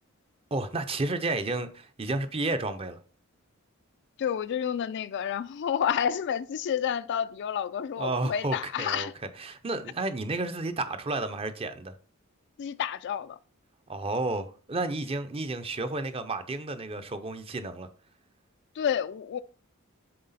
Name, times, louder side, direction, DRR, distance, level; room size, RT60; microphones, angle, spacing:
voice 1, 0.5-3.0 8.0-9.1 9.4-11.9 13.9-17.9, right 2 dB, 25° right, 0.6 m, -31 dB
voice 2, 4.2-9.1 12.6-13.4 18.8-19.4, left 8 dB, 55° left, 0.3 m, -29 dB
7.7 x 3.7 x 4.1 m
head